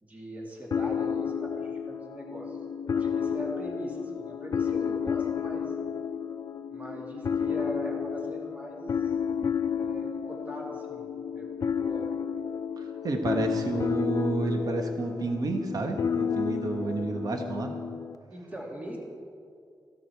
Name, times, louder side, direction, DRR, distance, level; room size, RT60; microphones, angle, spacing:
voice 1, 0.0-2.6 2.9-5.7 6.7-9.1 9.8-11.1 11.3-12.2 18.3-19.0, equal, 20° right, -2 dB, 2.4 m, -41 dB
sound 1, 0.7-18.2, left 7 dB, 50° left, 0.5 m, -31 dB
voice 2, 12.8-17.7, right 3 dB, 50° right, 4 dB, 1.2 m, -30 dB
15.5 x 12.0 x 4.6 m, 2.3 s
wide cardioid pair, 160°, 8 cm